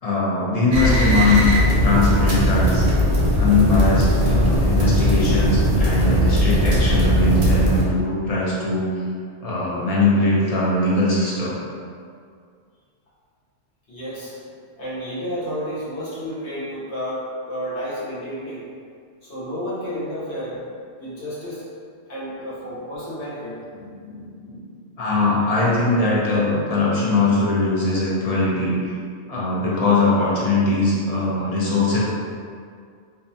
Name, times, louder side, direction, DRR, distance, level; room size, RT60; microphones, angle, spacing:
voice 1, 0.0-2.9 3.3-8.9 9.4-11.6 24.1-24.6 25.0-28.9 29.3-32.0, left 2 dB, 50° left, -7 dB, 0.4 m, -21 dB
sound 1, 0.7-7.8, equal, 50° right, 0.5 m, -18 dB
voice 2, 13.9-14.4 14.8-18.7 19.2-20.6 21.0-21.7 22.1-23.6, equal, 75° left, -9 dB, 1.2 m, -31 dB
2.6 x 2.1 x 2.6 m, 2.2 s
omnidirectional pair, 1.2 m